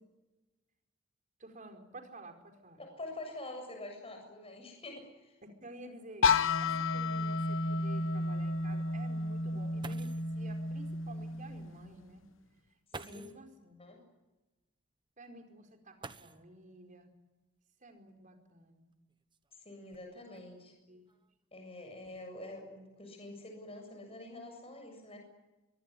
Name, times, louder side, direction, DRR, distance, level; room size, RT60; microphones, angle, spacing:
voice 1, 1.4-2.8 5.4-12.2 12.9-13.8 15.2-17.1 17.8-18.9 20.1-20.2 20.9-21.0, right 1 dB, 40° right, 4 dB, 4.8 m, -52 dB
voice 2, 2.8-5.3 13.0-13.2 13.8-14.0 19.6-20.7 21.5-25.2, left 2 dB, 30° left, 4 dB, 7.3 m, -46 dB
sound 1, 5.9-6.0 6.4-6.5 7.1-7.2 9.5-9.6 9.8-10.4 11.6-11.7 12.9-13.5 16.0-16.7 18.1-18.2 18.9-20.4 21.1-21.4 21.8-22.2, right 3 dB, 25° right, 1.2 m, -50 dB
sound 2, 6.2-12.0, left 3 dB, 70° left, 1.1 m, -32 dB
25.0 x 22.5 x 9.9 m, 1.1 s
head